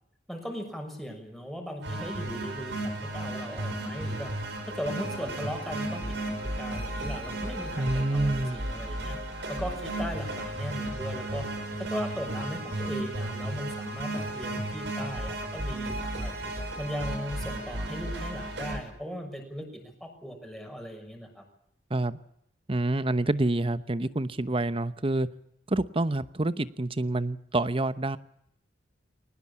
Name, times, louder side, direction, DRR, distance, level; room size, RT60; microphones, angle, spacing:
voice 1, 0.3-4.3 4.6-9.2 9.5-11.4 11.8-16.3 16.8-21.4, equal, ahead, 6.3 m, -38 dB
sound 1, 1.8-18.8, right 1 dB, 70° right, 6.3 m, -34 dB
voice 2, 7.8-8.6 21.9-22.2 22.7-25.3 25.7-28.2, right 2 dB, 30° right, 0.9 m, -27 dB
22.0 x 20.0 x 8.6 m
head